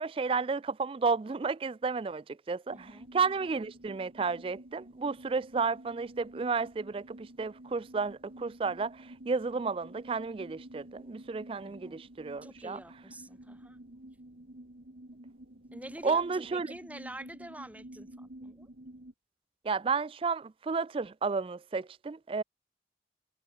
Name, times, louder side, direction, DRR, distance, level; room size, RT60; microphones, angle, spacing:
voice 1, 0.0-12.8 16.0-16.7 19.6-22.4, right 4 dB, 30° right, 0.3 m, -32 dB
voice 2, 2.7-3.1 11.6-12.0 12.4-13.8 15.7-18.7, right 1 dB, 10° right, 2.4 m, -47 dB
sound 1, 2.7-19.1, right 1 dB, 65° right, 2.2 m, -51 dB
head